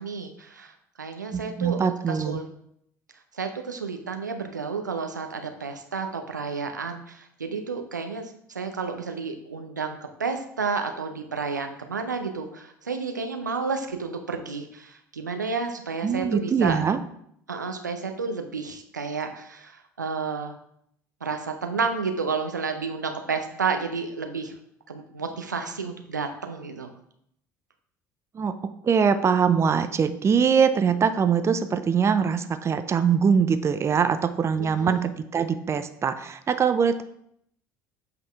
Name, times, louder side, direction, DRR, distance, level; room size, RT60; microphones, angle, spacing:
voice 1, 0.0-2.5 3.3-16.8 17.5-20.6 21.2-24.5 24.9-26.9 34.6-35.1, right 4 dB, 90° right, 5 dB, 0.7 m, -31 dB
voice 2, 1.3-2.4 16.0-17.0 28.3-37.0, right 6 dB, 30° right, 10 dB, 0.6 m, -23 dB
7.7 x 5.3 x 3.5 m, 0.72 s
figure-of-eight pair, 65°, 10 cm